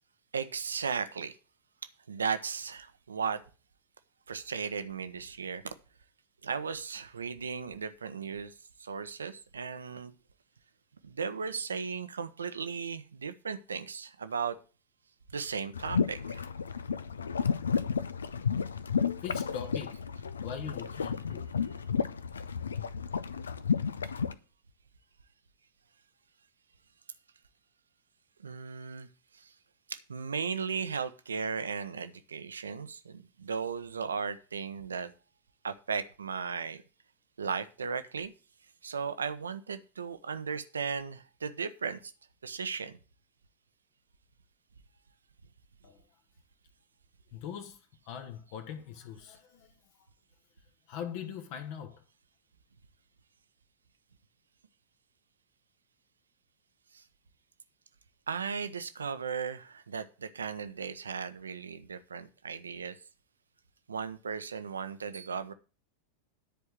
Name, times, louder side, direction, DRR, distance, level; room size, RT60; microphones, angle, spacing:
voice 1, 0.3-1.4 2.1-3.4 4.3-5.7 6.4-10.1 11.0-14.6 15.3-16.4 28.4-29.5 29.9-35.1 35.6-36.8 37.4-38.3 38.8-42.1 42.4-43.0 56.9-57.0 58.3-63.0 63.9-65.5, right 6 dB, 70° right, 0.9 m, -36 dB
sound 1, 15.7-24.3, left 6 dB, 70° left, 0.6 m, -32 dB
voice 2, 19.2-20.0 20.4-21.5 45.8-46.0 47.3-49.7 50.9-52.0, left 8 dB, 45° left, 1.3 m, -41 dB
10.5 x 4.6 x 8.0 m
figure-of-eight pair, 90°, 0 cm